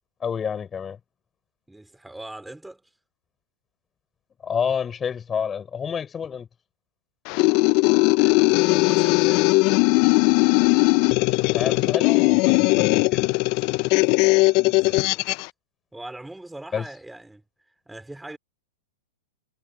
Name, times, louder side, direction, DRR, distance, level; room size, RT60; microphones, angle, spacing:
voice 1, 0.2-1.0 4.4-6.5 11.5-13.3 16.7-16.8, left 7 dB, 20° left, 5.6 m, -29 dB
voice 2, 1.7-2.8 8.2-9.5 13.8-15.2 15.9-17.4 17.9-18.4, right 2 dB, 5° right, 4.1 m, -41 dB
sound 1, 7.3-15.5, left 27 dB, 45° left, 0.4 m, -19 dB
hypercardioid pair, 130°, 0 cm